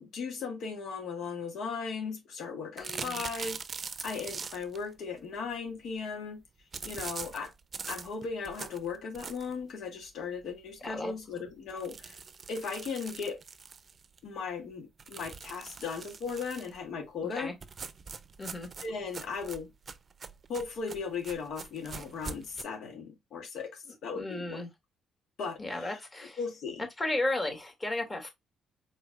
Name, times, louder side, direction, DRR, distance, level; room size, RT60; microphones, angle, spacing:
voice 1, 0.0-6.4 6.8-7.5 7.9-12.2 12.5-13.4 14.2-17.5 18.8-19.7 20.5-24.6 25.4-26.0 26.4-26.9, left 5 dB, 70° left, 2.4 m, -37 dB
voice 2, 2.8-3.2 10.8-11.1 17.2-17.5 18.4-18.7 24.1-24.7 25.6-26.4 26.8-28.3, left 2 dB, 25° left, 2.6 m, -34 dB
sound 1, 2.8-4.8 6.7-9.6 10.1-10.2 10.5-10.6 10.9-11.0 11.7-14.2 15.0-16.8 17.6-22.6, right 5 dB, 40° right, 0.6 m, -43 dB
4.7 x 3.9 x 2.4 m
cardioid pair, 90°, 0 cm